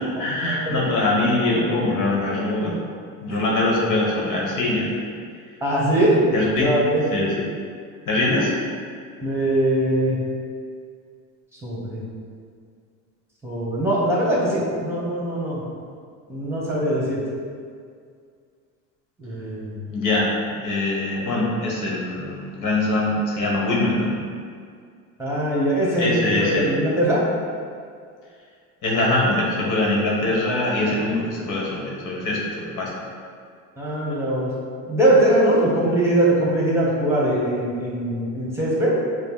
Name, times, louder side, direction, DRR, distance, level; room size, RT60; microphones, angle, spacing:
voice 1, 0.0-2.8 3.2-4.9 6.3-6.7 7.1-7.5 8.1-8.5 19.9-20.3 20.6-24.2 26.0-26.8 28.8-32.9, left 2 dB, 55° left, -3 dB, 1.1 m, -23 dB
voice 2, 5.6-7.0 9.2-10.3 11.6-12.0 13.4-15.6 16.3-17.2 19.2-19.8 25.2-26.1 26.4-27.2 33.8-34.5 34.9-39.0, right 1 dB, 5° right, -6 dB, 1.4 m, -21 dB
5.1 x 2.1 x 4.7 m, 2.1 s
supercardioid pair, 90°, 37 cm